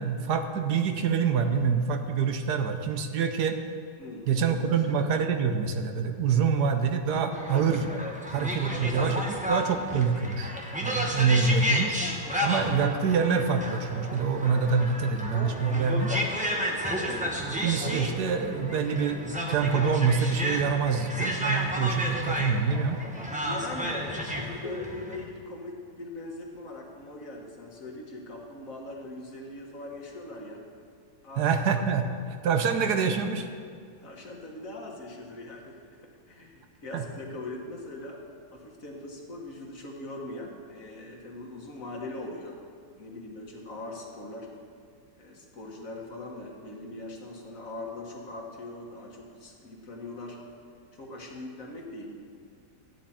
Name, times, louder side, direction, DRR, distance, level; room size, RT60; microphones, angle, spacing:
voice 1, 0.0-3.6 4.3-7.9 8.3-10.5 10.8-12.0 12.4-16.1 17.4-23.0 31.4-33.5 36.9-37.0, right 5 dB, 75° right, 6 dB, 1.3 m, -26 dB
voice 2, 4.0-4.8 16.5-17.0 23.4-30.6 31.2-31.5 34.0-42.6 43.0-44.6 45.2-50.4 50.9-52.1, left 2 dB, 50° left, 0 dB, 1.8 m, -41 dB
sound 1, 7.3-25.2, equal, 5° right, 0.7 m, -32 dB
13.5 x 9.2 x 4.3 m, 2.3 s
omnidirectional pair, 1.8 m